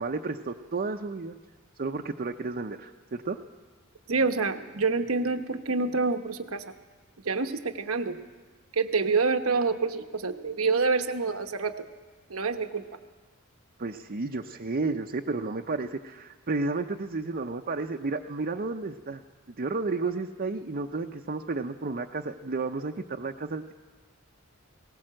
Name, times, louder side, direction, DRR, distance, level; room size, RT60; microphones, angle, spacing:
voice 1, 0.0-1.4 1.8-3.4 13.8-19.2 19.6-23.7, right 3 dB, 45° right, 3 dB, 0.7 m, -32 dB
voice 2, 4.1-6.6 7.2-8.2 8.7-11.7 12.3-12.8, right 4 dB, 85° right, 7 dB, 1.0 m, -27 dB
20.0 x 18.5 x 7.7 m, 1.4 s
head